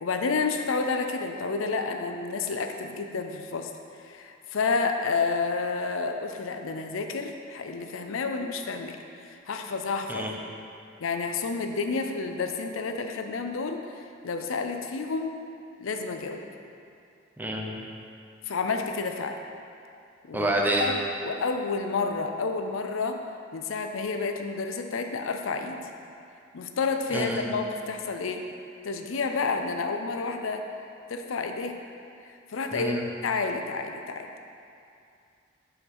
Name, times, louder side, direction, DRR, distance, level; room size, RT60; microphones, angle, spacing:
voice 1, 0.0-3.7 4.0-9.0 9.2-10.3 11.0-15.4 15.8-16.4 18.5-19.4 20.2-20.5 20.8-23.2 23.5-25.8 26.5-28.4 28.8-30.6 31.1-31.8 32.3-33.0 33.2-34.3, left 4 dB, 85° left, 5 dB, 0.5 m, -30 dB
voice 2, 17.4-17.8 20.3-20.9 27.1-27.5 32.7-33.0, right 1 dB, 10° right, -1 dB, 0.7 m, -27 dB
6.8 x 4.6 x 5.4 m, 2.5 s
head